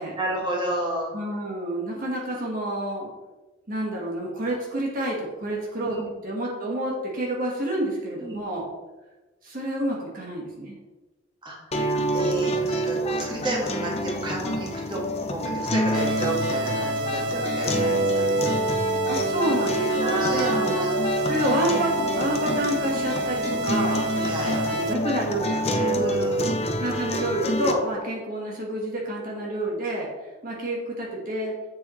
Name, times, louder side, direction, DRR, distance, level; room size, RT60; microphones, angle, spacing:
voice 1, 0.2-1.1 5.8-6.1 8.2-8.4 11.4-18.4 20.0-20.9 24.1-24.6 25.8-26.7, right 1 dB, 25° right, -2 dB, 1.7 m, -31 dB
voice 2, 1.1-3.1 3.7-6.0 6.2-8.6 9.4-10.8 12.6-13.1 19.1-20.8 21.3-24.0 24.4-25.8 26.8-30.1 30.4-31.5, right 1 dB, 50° right, -2 dB, 1.6 m, -29 dB
sound 1, 11.7-27.7, right 1 dB, 35° left, 0.7 m, -27 dB
sound 2, 15.9-24.9, right 1 dB, 65° right, 0.6 m, -29 dB
7.7 x 7.2 x 3.2 m, 1.1 s
head